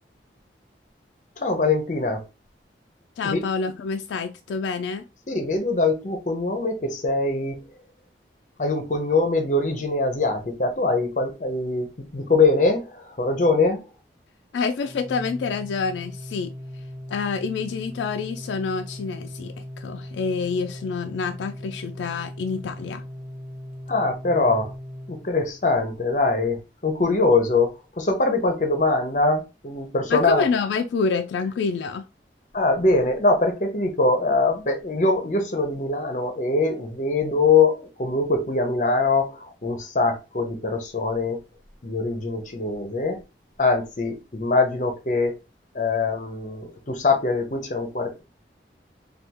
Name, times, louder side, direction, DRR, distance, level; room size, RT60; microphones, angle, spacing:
voice 1, 1.4-2.2 3.2-3.4 5.3-7.6 8.6-13.8 23.9-24.7 25.1-27.7 28.0-30.5 32.5-41.4 41.8-43.2 43.6-45.3 45.7-48.2, left 3 dB, 45° left, 0.6 m, -23 dB
voice 2, 3.2-5.0 14.5-16.5 17.1-23.0 30.1-32.1, left 5 dB, 85° left, 0.3 m, -27 dB
Organ, 14.8-25.7, left 1 dB, ahead, 0.3 m, -38 dB
3.4 x 2.3 x 2.8 m
head